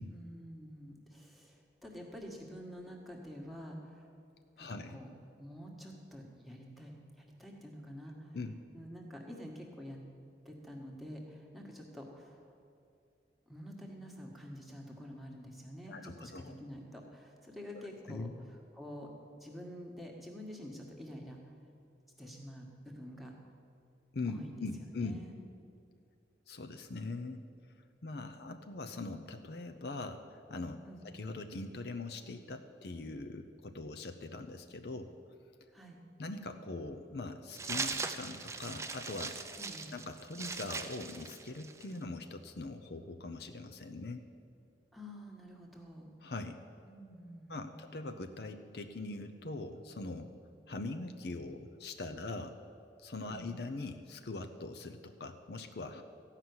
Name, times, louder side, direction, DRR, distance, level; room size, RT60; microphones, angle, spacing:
voice 1, 0.0-4.1 4.6-5.1 5.4-8.4 8.7-10.0 10.4-12.6 13.5-19.1 19.4-21.5 22.2-23.3 24.3-24.6 25.0-25.4 30.8-31.1 35.7-36.0 39.5-39.9 44.9-46.1 46.8-47.8 53.3-53.5, equal, ahead, -1 dB, 1.4 m, -48 dB
voice 2, 4.6-5.0 8.3-8.5 15.9-16.6 18.1-18.6 24.1-25.2 26.5-27.4 28.0-35.1 36.2-39.4 39.9-44.2 46.2-46.6 47.5-50.3 50.7-52.6 53.0-56.0, left 3 dB, 65° left, 6 dB, 0.6 m, -42 dB
sound 1, 37.5-42.0, right 4 dB, 15° right, 0.5 m, -40 dB
14.0 x 5.8 x 9.5 m, 2.5 s
head